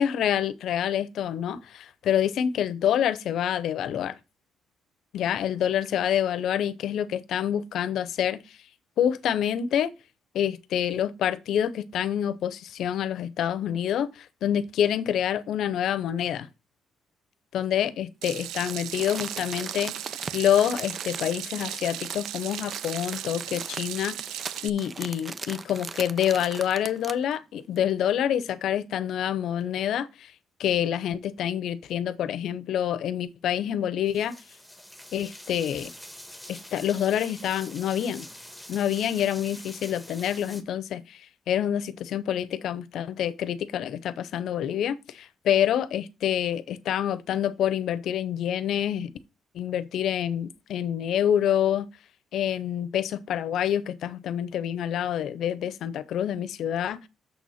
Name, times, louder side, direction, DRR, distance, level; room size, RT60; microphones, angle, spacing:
voice 1, 0.0-4.2 5.1-8.4 9.0-9.9 10.3-16.5 17.5-30.3 30.6-34.3 35.1-35.9 36.5-38.3 38.7-41.2 41.5-49.1 49.5-51.9 52.3-57.1, left 10 dB, 75° left, 0.8 m, -27 dB
Water tap faucet / Sink (filling or washing), 18.2-24.7, right 13 dB, 90° right, 0.4 m, -37 dB
Crumpling crinkling, 18.7-27.3 27.8-27.9, right 4 dB, 35° right, 0.7 m, -39 dB
sound 1, 34.1-40.6, equal, ahead, 1.5 m, -45 dB
7.0 x 4.2 x 6.3 m
cardioid pair, 90°, 0 cm